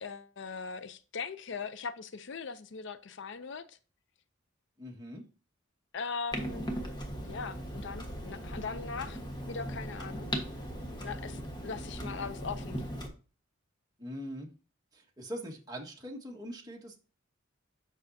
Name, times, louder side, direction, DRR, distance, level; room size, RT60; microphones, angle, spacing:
voice 1, 0.0-3.8 5.9-6.7 7.2-9.2 9.5-10.3 11.0-12.8, left 5 dB, 65° left, 0.5 m, -40 dB
voice 2, 4.8-5.2 12.0-12.1 14.0-14.5 14.9-17.0, equal, 20° right, 1.6 m, -42 dB
Clock, 6.3-13.1, equal, 20° left, 1.4 m, -38 dB
9.0 x 6.1 x 2.7 m
head